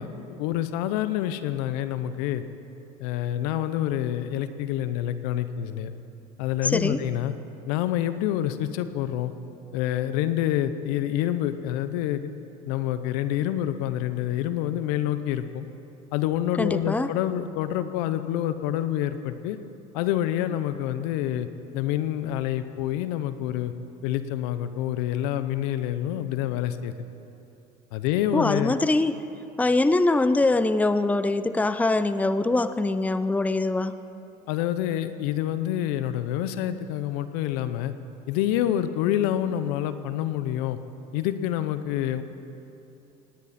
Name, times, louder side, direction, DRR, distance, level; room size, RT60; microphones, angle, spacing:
voice 1, 0.0-2.4 3.0-5.9 6.4-7.3 7.7-9.3 9.7-12.3 12.7-15.7 16.1-19.6 19.9-21.5 21.7-23.7 24.0-26.9 27.9-28.8 34.5-37.9 38.3-40.8 41.1-42.2, left 12 dB, 80° left, 12 dB, 0.8 m, -27 dB
voice 2, 6.6-7.0 16.6-17.1 28.3-29.2 29.6-33.9, left 2 dB, 5° left, 12 dB, 0.6 m, -23 dB
19.0 x 17.0 x 4.3 m, 2.9 s
supercardioid pair, 80°, 20 cm